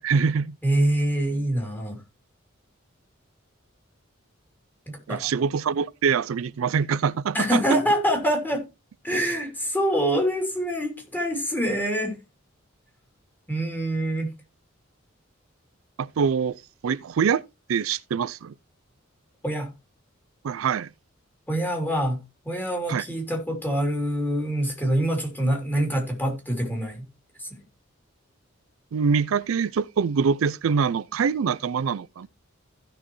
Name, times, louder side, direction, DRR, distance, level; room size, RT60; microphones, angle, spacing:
voice 1, 0.0-0.6 5.1-7.6 16.0-17.4 17.7-18.5 20.4-20.9 22.9-23.1 28.9-32.3, right 6 dB, 80° right, 0.4 m, -24 dB
voice 2, 0.6-2.0 4.9-5.2 7.3-8.6 9.0-12.2 13.5-14.3 19.4-19.7 21.5-27.0 27.4-27.5, right 1 dB, 10° left, 3.2 m, -25 dB
16.0 x 6.2 x 3.1 m
head